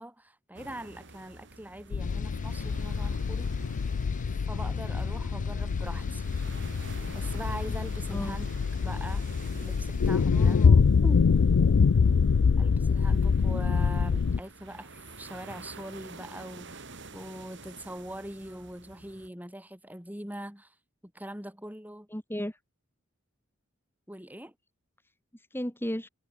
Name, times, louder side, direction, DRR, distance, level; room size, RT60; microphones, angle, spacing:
voice 1, 0.0-3.5 4.5-6.3 7.1-8.5 8.8-9.3 9.5-10.6 12.6-20.7 21.0-22.1 24.1-24.5, right 1 dB, 10° right, 6.4 m, -42 dB
sound 1, 0.5-19.3, right 3 dB, 60° right, 6.5 m, -49 dB
sound 2, 1.9-14.4, left 5 dB, 90° left, 0.5 m, -25 dB
sound 3, 2.0-10.7, left 2 dB, 40° left, 5.6 m, -46 dB
voice 2, 10.3-11.3 22.1-22.6 25.3-26.1, equal, 10° left, 2.6 m, -35 dB
head